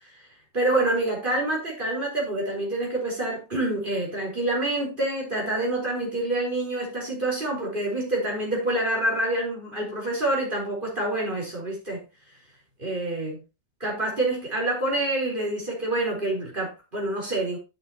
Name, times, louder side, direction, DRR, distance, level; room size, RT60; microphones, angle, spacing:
voice 1, 0.5-12.0 12.8-13.4 13.8-17.6, right 2 dB, 30° right, 4.3 m, -27 dB
11.0 x 7.1 x 2.9 m
omnidirectional pair, 1.8 m